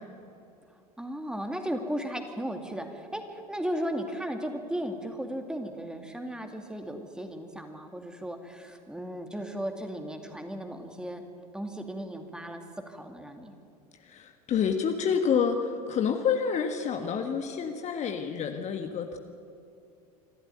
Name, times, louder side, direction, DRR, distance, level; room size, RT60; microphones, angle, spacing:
voice 1, 0.7-11.2 11.5-13.5, equal, 5° right, 5 dB, 2.5 m, -36 dB
voice 2, 14.0-19.2, left 7 dB, 35° left, 5 dB, 1.6 m, -28 dB
26.0 x 13.0 x 9.5 m, 2.6 s
figure-of-eight pair, 75°, 20 cm